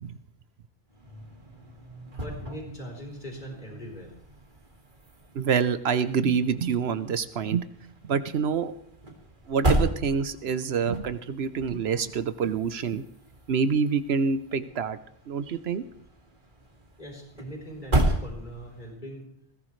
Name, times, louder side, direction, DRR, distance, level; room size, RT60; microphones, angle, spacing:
sound 1, 0.9-19.0, right 1 dB, 50° right, 2.4 m, -34 dB
voice 1, 2.2-4.1 17.0-19.3, equal, 50° left, 0 dB, 4.2 m, -41 dB
voice 2, 5.3-7.7 8.0-8.7 9.5-13.0 13.5-15.0 15.3-15.8, right 6 dB, 75° right, 12 dB, 1.0 m, -26 dB
20.5 x 16.5 x 3.2 m, 0.67 s
omnidirectional pair, 1.1 m